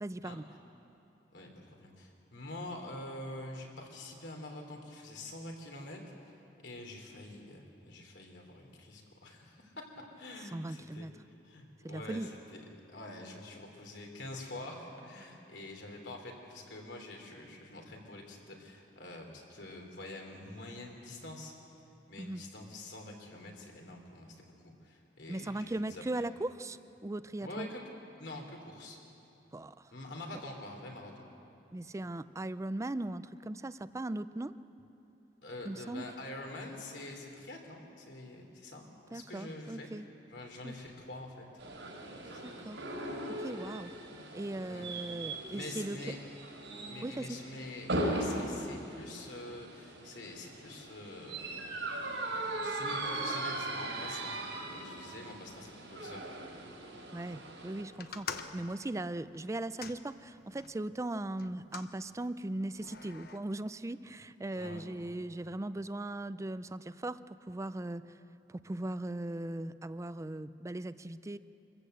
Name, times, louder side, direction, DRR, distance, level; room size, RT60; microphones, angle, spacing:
voice 1, 0.0-0.4 10.5-11.1 11.8-12.3 22.2-22.4 25.3-27.7 29.5-29.7 31.7-34.6 35.6-36.0 39.1-40.1 40.6-40.7 42.4-42.8 43.3-43.9 44.3-46.0 47.0-47.4 57.1-58.3 58.5-68.0 68.5-71.4, right 1 dB, 15° right, 14 dB, 0.4 m, -38 dB
voice 2, 1.3-6.4 6.6-11.1 11.4-21.5 22.1-26.2 27.4-27.8 28.2-29.0 29.9-31.2 35.4-39.9 40.3-41.5 42.1-42.4 44.7-44.9 45.5-46.2 46.9-51.7 52.3-56.3 64.5-65.1, left 2 dB, 75° left, 2 dB, 3.3 m, -46 dB
sound 1, 41.6-57.8, right 1 dB, 85° right, 4.4 m, -39 dB
sound 2, 58.0-60.7 61.4-61.9 62.7-63.4, left 5 dB, 55° left, 1.0 m, -45 dB
25.0 x 14.5 x 8.0 m, 2.8 s
head